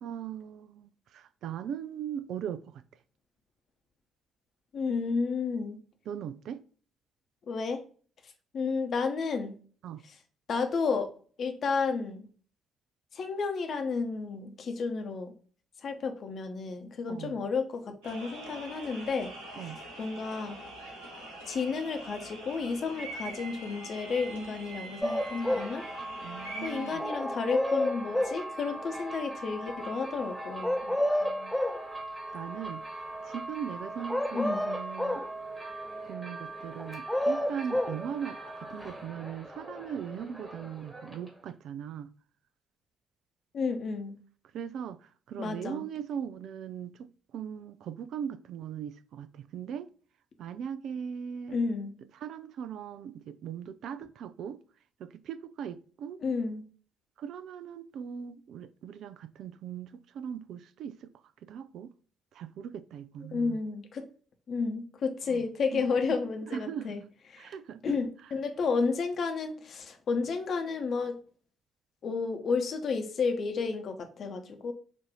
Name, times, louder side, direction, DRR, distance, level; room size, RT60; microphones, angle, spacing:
voice 1, 0.0-2.8 6.1-6.6 9.8-10.0 17.1-17.4 19.6-19.8 26.2-27.0 30.8-31.5 32.3-32.8 33.3-35.3 36.0-42.1 44.5-47.0 47.3-49.9 50.4-51.6 52.2-54.6 55.0-56.2 57.2-61.1 61.4-61.9 62.3-63.6 65.3-65.4 65.7-66.0 66.5-67.1 67.4-68.0, right 8 dB, 60° right, 0.3 m, -39 dB
voice 2, 4.7-5.8 7.5-7.8 8.5-9.6 10.5-11.1 11.4-12.3 13.1-15.3 15.8-19.7 20.0-20.6 21.5-25.8 26.6-30.7 34.3-34.7 43.5-44.1 45.4-45.8 51.5-51.9 56.2-56.7 63.3-64.1 64.5-67.0 67.3-67.5 67.8-71.2 72.0-74.7, left 4 dB, 50° left, 0.8 m, -32 dB
sound 1, 18.0-27.0, right 2 dB, 75° right, 1.4 m, -44 dB
sound 2, 25.0-25.7 27.0-28.4 30.6-31.8 34.1-35.3 36.8-38.0, left 1 dB, 5° left, 0.4 m, -29 dB
sound 3, 25.1-41.5, right 1 dB, 25° right, 1.7 m, -41 dB
6.1 x 2.6 x 2.9 m
figure-of-eight pair, 45°, 0 cm